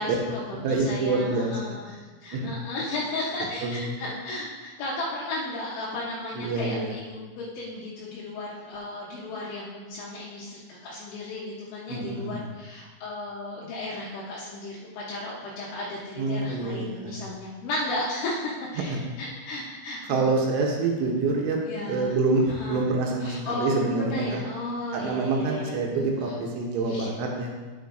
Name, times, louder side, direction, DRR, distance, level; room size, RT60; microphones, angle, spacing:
voice 1, 0.0-20.3 21.7-22.1 22.5-22.8 23.2-26.4 26.9-27.1, left 2 dB, 75° left, -5 dB, 3.2 m, -34 dB
voice 2, 0.6-1.8 2.3-2.5 3.6-4.0 6.3-7.0 11.9-12.5 16.2-17.2 18.9-19.0 20.1-21.6 21.9-24.4 24.9-27.5, right 3 dB, 80° right, 0 dB, 3.1 m, -26 dB
9.4 x 8.3 x 2.6 m, 1.3 s
omnidirectional pair, 5.8 m